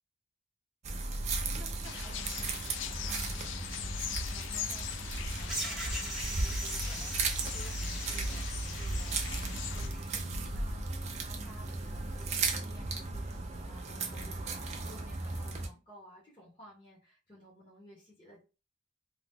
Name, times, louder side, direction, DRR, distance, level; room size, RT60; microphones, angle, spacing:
sound 1, 0.8-15.7, right 3 dB, 35° right, 0.4 m, -36 dB
voice 1, 1.4-18.4, equal, 25° left, -6 dB, 1.0 m, -55 dB
sound 2, 1.8-9.9, left 9 dB, 85° left, 0.4 m, -41 dB
sound 3, 5.5-10.2, right 1 dB, ahead, 0.7 m, -41 dB
2.8 x 2.3 x 3.5 m, 0.30 s
head